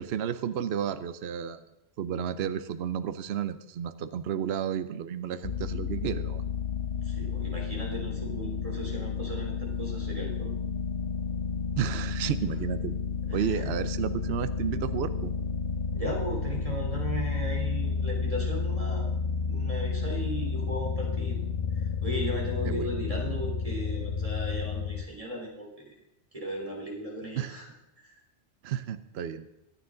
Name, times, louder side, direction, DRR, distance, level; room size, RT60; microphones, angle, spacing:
voice 1, 0.0-1.6 2.0-6.4 11.8-12.9 13.3-15.3 22.6-22.9 27.3-27.6 28.6-29.5, right 9 dB, 70° right, 12 dB, 0.9 m, -32 dB
sound 1, 5.4-25.1, left 5 dB, 60° left, 0.9 m, -31 dB
voice 2, 7.0-10.6 13.3-13.7 15.9-19.1 19.4-21.4 21.7-26.0 26.3-27.7 28.0-28.2, right 1 dB, 30° right, -1 dB, 3.6 m, -37 dB
24.0 x 9.2 x 3.8 m, 0.86 s
omnidirectional pair, 1.2 m